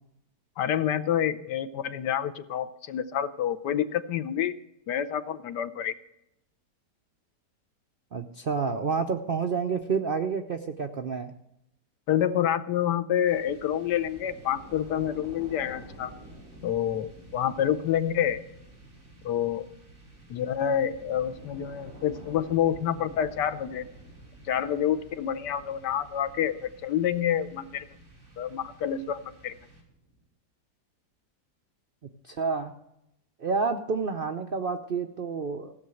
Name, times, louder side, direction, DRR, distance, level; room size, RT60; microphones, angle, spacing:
voice 1, 0.6-4.5 4.9-5.9 12.1-16.1 16.6-18.4 19.2-19.7 20.3-23.8 24.5-27.9 28.4-29.6, left 10 dB, 80° left, 12 dB, 1.3 m, -28 dB
voice 2, 8.1-11.3 32.2-32.7 33.4-35.7, right 5 dB, 65° right, 5 dB, 0.5 m, -29 dB
sound 1, 13.2-30.2, right 1 dB, 45° right, 3.7 m, -49 dB
16.0 x 6.7 x 7.6 m, 0.80 s
omnidirectional pair, 1.8 m